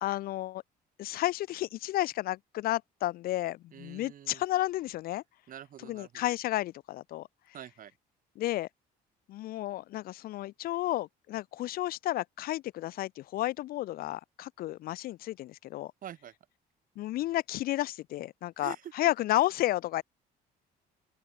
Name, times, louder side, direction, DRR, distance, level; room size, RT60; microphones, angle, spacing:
voice 1, 0.0-0.6 1.0-5.2 5.9-7.3 8.4-8.7 9.3-15.9 17.0-20.0, left 15 dB, 60° left, 0.4 m, -32 dB
voice 2, 3.7-4.4 5.5-6.3 7.5-7.9 16.0-16.3 18.6-18.9, right 10 dB, 55° right, 2.6 m, -46 dB
open air
cardioid pair, 110°, 17 cm